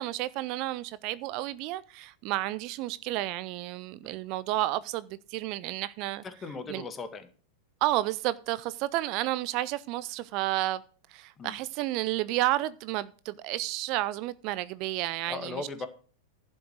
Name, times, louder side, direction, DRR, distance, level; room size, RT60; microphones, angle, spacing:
voice 1, 0.0-6.2 6.7-6.8 7.8-10.8 11.1-15.7, right 16 dB, 45° right, 0.5 m, -31 dB
voice 2, 6.2-7.3 11.4-11.6 15.3-15.9, left 4 dB, 25° left, 1.8 m, -38 dB
11.5 x 6.1 x 6.3 m
figure-of-eight pair, 95°, 0 cm